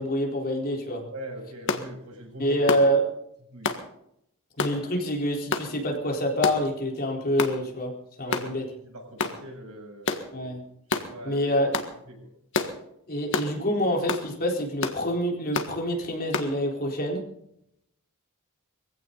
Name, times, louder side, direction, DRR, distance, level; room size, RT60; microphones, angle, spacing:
voice 1, 0.0-1.0 2.4-3.1 4.6-8.6 10.3-10.6 11.2-11.7 13.1-17.2, equal, 45° left, 0 dB, 4.1 m, -26 dB
voice 2, 1.1-2.5 3.5-3.7 8.2-10.1 11.0-11.5 12.0-12.3, right 1 dB, 85° right, 1 dB, 7.5 m, -41 dB
sound 1, 1.7-1.9 2.7-2.9 3.6-3.8 4.6-4.8 5.5-5.7 6.4-6.7 7.4-7.6 8.3-8.5 9.2-9.4 10.1-10.3 10.9-11.1 11.7-11.9 12.5-12.7 13.3-13.5 14.1-14.3 14.8-15.0 15.5-15.7 16.3-16.5, left 4 dB, 60° left, 1.7 m, -28 dB
22.0 x 16.0 x 4.0 m, 0.76 s
head